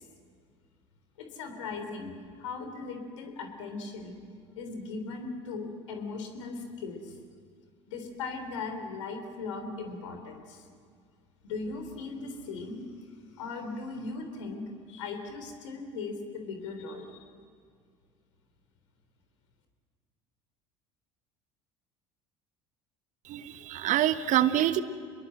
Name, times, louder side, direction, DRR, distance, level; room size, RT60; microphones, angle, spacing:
voice 1, 1.2-4.2 4.6-7.1 7.9-10.6 11.5-12.9 13.4-17.3, left 4 dB, 80° left, 5 dB, 3.7 m, -38 dB
voice 2, 23.3-24.8, right 12 dB, 55° right, 12 dB, 1.2 m, -26 dB
27.0 x 21.5 x 7.9 m, 2.1 s
hypercardioid pair, 70°, 16 cm